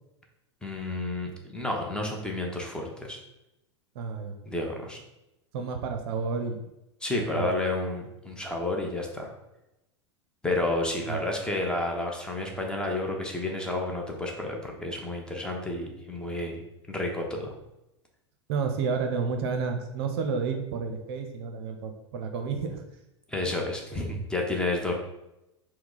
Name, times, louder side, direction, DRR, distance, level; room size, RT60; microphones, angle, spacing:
voice 1, 0.6-3.2 4.4-5.0 7.0-9.3 10.4-16.6 16.9-17.5 23.3-24.9, left 2 dB, 5° left, 0 dB, 0.7 m, -30 dB
voice 2, 4.0-4.3 5.5-6.7 7.1-7.5 11.1-11.2 18.5-22.8, right 5 dB, 55° right, 5 dB, 0.5 m, -30 dB
4.5 x 2.1 x 3.8 m, 0.91 s
figure-of-eight pair, 90°, 15 cm